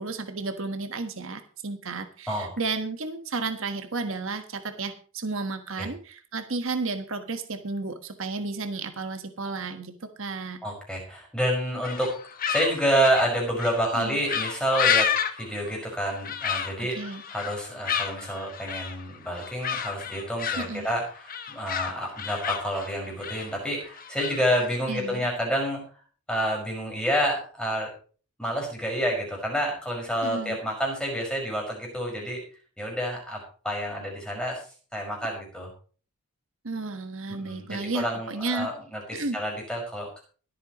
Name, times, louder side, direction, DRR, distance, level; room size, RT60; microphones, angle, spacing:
voice 1, 0.0-9.9 10.2-10.6 13.9-14.2 16.8-17.2 20.6-20.9 24.9-25.3 30.2-30.6 36.6-38.7 39.1-39.4, right 3 dB, 60° right, 7 dB, 1.4 m, -32 dB
voice 2, 10.6-12.1 12.5-15.1 15.4-25.8 26.3-27.9 28.4-32.4 32.8-33.4 33.6-34.6 34.9-35.7 37.3-40.2, equal, 5° left, -1 dB, 5.6 m, -28 dB
sound 1, 11.8-25.2, left 8 dB, 40° left, 1.2 m, -31 dB
24.0 x 8.7 x 3.1 m, 0.39 s
head